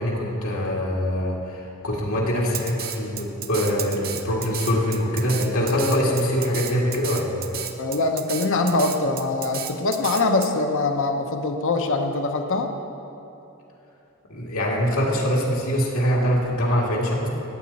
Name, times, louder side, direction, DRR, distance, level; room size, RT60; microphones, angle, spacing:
voice 1, 0.0-7.5 14.3-17.3, equal, 80° left, -3 dB, 2.2 m, -23 dB
Drum kit, 2.5-10.5, right 9 dB, 45° right, 0.7 m, -32 dB
voice 2, 7.8-12.7, left 3 dB, 60° left, 5 dB, 0.8 m, -23 dB
17.0 x 8.5 x 4.2 m, 3.0 s
head